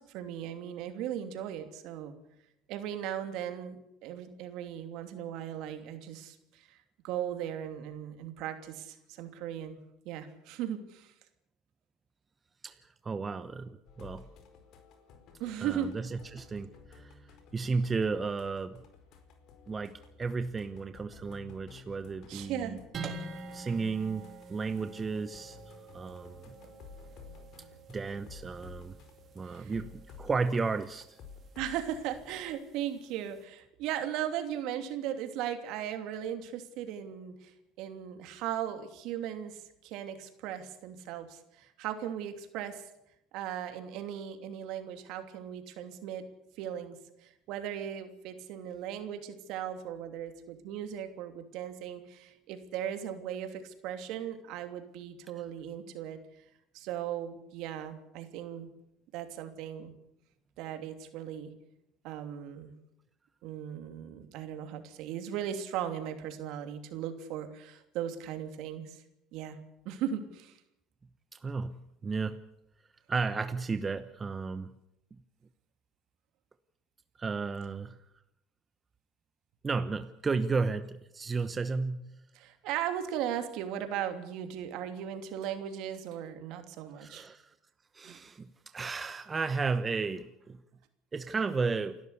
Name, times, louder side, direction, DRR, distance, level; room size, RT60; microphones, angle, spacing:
voice 1, 0.1-2.1 2.7-6.8 7.0-9.8 10.0-11.1 15.4-15.9 22.3-22.8 29.5-29.7 31.6-42.8 43.3-46.3 46.6-56.2 56.7-58.7 59.1-59.9 60.6-61.5 62.0-62.7 63.4-69.0 69.3-69.6 69.8-70.6 82.3-87.3 88.0-88.2, right 10 dB, 65° right, 8 dB, 2.9 m, -37 dB
voice 2, 13.0-14.2 15.6-17.1 17.5-18.8 19.7-22.8 23.5-24.2 24.5-26.5 27.9-29.0 29.3-31.2 71.3-72.4 73.1-74.7 77.2-78.0 79.6-82.1 87.0-87.5 87.9-90.6 91.1-92.0, right 4 dB, 25° right, 11 dB, 1.0 m, -33 dB
sound 1, 13.9-32.5, left 5 dB, 60° left, 4.6 m, -54 dB
sound 2, 22.9-33.4, right 4 dB, 40° right, 3.4 m, -48 dB
28.5 x 12.5 x 8.3 m, 0.84 s
supercardioid pair, 100°, 0 cm